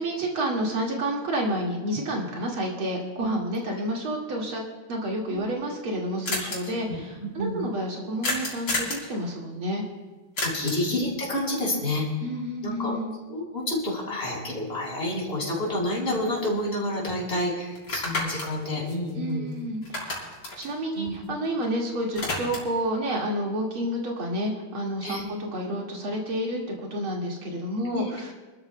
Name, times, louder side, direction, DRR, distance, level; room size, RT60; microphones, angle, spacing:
voice 1, 0.0-4.6 4.9-9.8 10.6-10.8 12.2-13.1 19.1-28.3, right 1 dB, 75° right, -1 dB, 3.0 m, -30 dB
sound 1, 5.3-5.4 5.6-5.7 5.9-6.0 6.3-6.6 8.2-9.1 10.4-10.9 15.1-15.2 15.6-16.7 17.1-17.2 17.8-19.5 19.8-21.7 21.9-22.8, left 2 dB, 65° left, 4.3 m, -31 dB
voice 2, 10.4-12.1 12.6-12.9 13.3-19.5 21.0-21.1 25.0-25.2 27.9-28.1, left 1 dB, 30° left, -3 dB, 3.9 m, -29 dB
28.5 x 13.0 x 2.3 m, 1.2 s
omnidirectional pair, 2.3 m